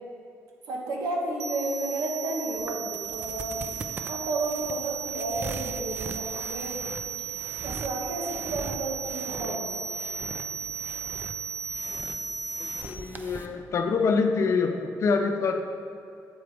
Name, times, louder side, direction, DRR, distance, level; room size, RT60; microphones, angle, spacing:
voice 1, 0.7-6.9 7.6-9.8, right 2 dB, 85° right, -1 dB, 1.4 m, -32 dB
sound 1, 1.4-12.8, right 7 dB, 70° right, 0.6 m, -35 dB
sound 2, 2.6-13.5, right 3 dB, 30° right, 0.6 m, -41 dB
voice 2, 12.6-15.6, left 4 dB, 50° left, 5 dB, 0.7 m, -26 dB
8.0 x 7.7 x 3.5 m, 2.5 s
cardioid pair, 100°, 6 cm